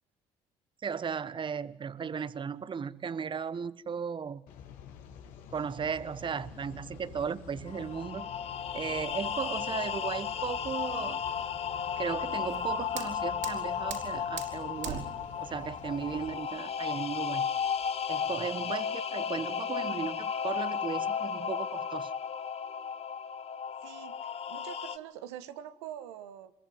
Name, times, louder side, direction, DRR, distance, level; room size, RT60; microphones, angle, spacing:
voice 1, 0.8-4.4 5.5-8.3 8.7-11.2 12.0-15.1 15.4-17.5 18.1-22.1, right 6 dB, 35° right, 16 dB, 1.3 m, -36 dB
sound 1, 4.5-16.4, left 7 dB, 75° left, 3.3 m, -49 dB
sound 2, 7.7-25.0, left 7 dB, 50° left, 1.5 m, -34 dB
Fire, 12.3-18.3, right 8 dB, 65° right, 5.4 m, -44 dB
voice 2, 23.8-26.5, right 11 dB, 90° right, 10 dB, 1.6 m, -44 dB
25.5 x 23.0 x 9.8 m, 0.66 s
supercardioid pair, 70°, 14 cm